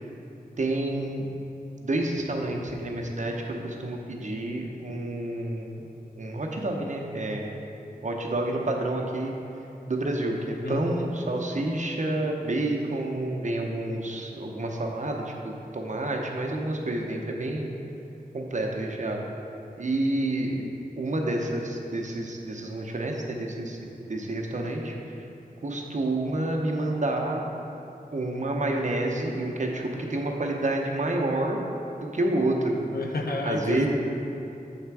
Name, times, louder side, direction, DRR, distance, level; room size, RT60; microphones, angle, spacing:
voice 1, 0.6-1.3 1.8-5.9 6.2-7.6 8.0-9.3 9.9-17.7 18.3-19.2 19.8-20.7 21.0-23.8 24.1-24.9 25.6-27.4 28.1-31.6 32.1-32.7 33.4-33.9, right 2 dB, 55° right, 0 dB, 0.7 m, -29 dB
voice 2, 10.6-11.1 32.9-33.9, left 2 dB, 85° left, 2 dB, 0.6 m, -31 dB
7.3 x 3.3 x 4.6 m, 2.8 s
wide cardioid pair, 75°, 15 cm